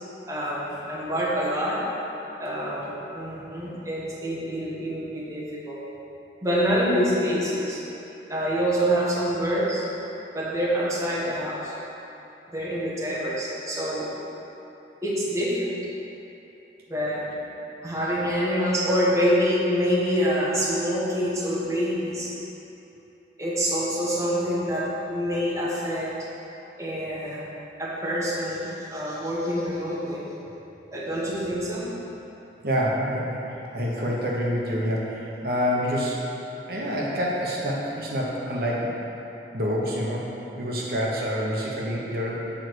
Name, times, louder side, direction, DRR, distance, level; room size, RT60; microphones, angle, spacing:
voice 1, 0.3-1.8 2.4-5.8 6.4-7.8 8.3-9.8 10.3-11.7 12.5-14.1 15.0-15.8 16.9-17.2 17.8-22.3 23.4-26.1 26.8-27.5 27.8-30.2 30.9-31.9, equal, 15° right, -7 dB, 1.1 m, -26 dB
voice 2, 32.6-33.4 33.7-36.2 36.7-39.0 39.5-40.2 40.6-42.4, equal, 55° right, -4 dB, 1.2 m, -27 dB
7.5 x 4.6 x 6.4 m, 3.0 s
head